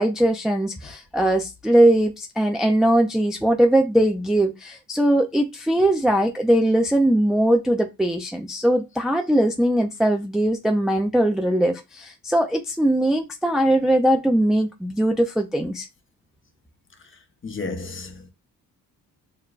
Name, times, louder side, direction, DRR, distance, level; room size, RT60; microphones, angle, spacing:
voice 1, 0.0-15.9, right 1 dB, ahead, 0.4 m, -20 dB
voice 2, 17.0-18.3, left 3 dB, 35° left, 0.9 m, -34 dB
6.4 x 2.2 x 2.4 m
cardioid pair, 95°, 37 cm